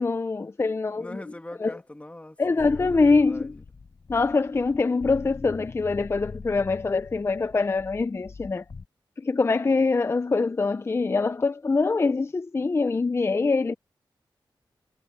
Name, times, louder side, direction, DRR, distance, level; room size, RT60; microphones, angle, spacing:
voice 1, 0.0-1.1 1.6-1.7 2.4-3.5 4.1-8.6 9.2-13.7, left 3 dB, 30° left, 0.5 m, -24 dB
voice 2, 1.0-2.4 2.7-3.6, left 1 dB, 15° left, 2.2 m, -42 dB
sound 1, 2.6-8.9, left 4 dB, 55° left, 7.2 m, -43 dB
wide cardioid pair, 75°, 9 cm